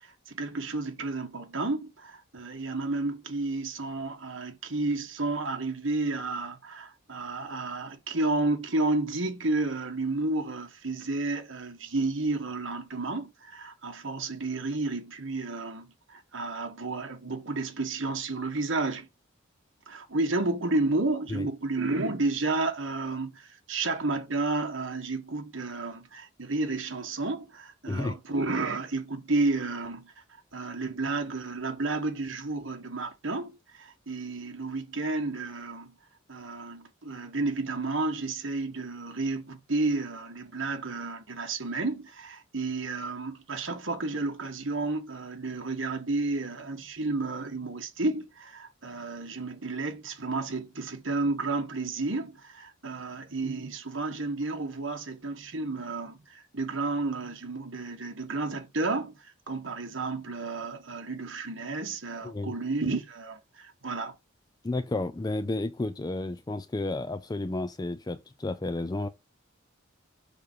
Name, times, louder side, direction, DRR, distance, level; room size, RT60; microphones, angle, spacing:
voice 1, 0.3-19.1 19.9-30.2 30.5-36.0 36.3-64.1, right 3 dB, 70° right, 1.5 m, -31 dB
voice 2, 27.9-28.2 62.2-62.5 64.6-69.1, left 2 dB, 20° left, 0.4 m, -32 dB
6.9 x 3.4 x 4.6 m
head